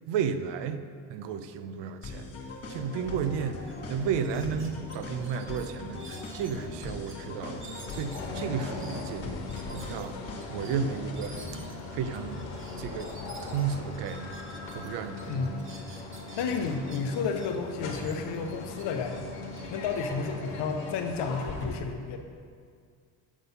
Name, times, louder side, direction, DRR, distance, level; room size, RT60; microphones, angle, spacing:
voice 1, 0.1-0.8 1.1-2.3 2.7-10.2 10.5-12.5 12.8-13.1 13.4-14.4 14.7-15.7, right 7 dB, 80° right, 10 dB, 0.6 m, -33 dB
sound 1, 2.0-11.6, left 2 dB, 35° left, 1.0 m, -41 dB
sound 2, 2.9-21.7, left 3 dB, 90° left, 1.2 m, -41 dB
sound 3, 3.2-3.4 3.6-3.8 4.2-7.2 7.6-14.9 15.2-17.5 17.9-20.7, right 2 dB, 30° right, 0.8 m, -51 dB
voice 2, 15.3-15.6 16.4-19.4 19.7-22.2, left 5 dB, 75° left, 5 dB, 0.8 m, -32 dB
7.1 x 4.1 x 5.6 m, 2.2 s
cardioid pair, 110°, 42 cm